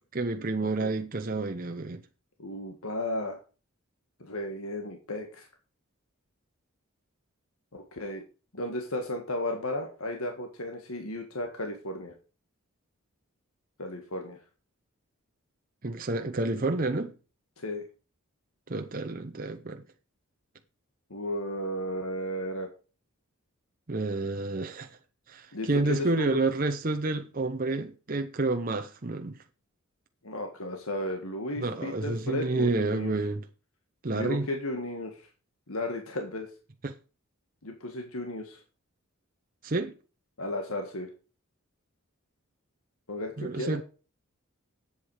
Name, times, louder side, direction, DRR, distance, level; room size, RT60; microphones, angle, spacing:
voice 1, 0.1-2.0 15.8-17.1 18.7-19.8 23.9-25.0 25.3-29.4 31.6-33.4 34.0-34.5 36.8-37.0 39.6-39.9 43.4-43.8, right 3 dB, 40° right, 0.7 m, -29 dB
voice 2, 2.4-3.4 4.2-5.5 7.7-8.2 8.5-12.1 13.8-14.4 17.6-17.9 21.1-22.7 25.5-26.4 30.2-33.1 34.1-35.3 35.7-36.5 37.6-38.6 40.4-41.1 43.1-43.8, left 1 dB, 75° left, 1.8 m, -34 dB
10.5 x 8.3 x 4.8 m
head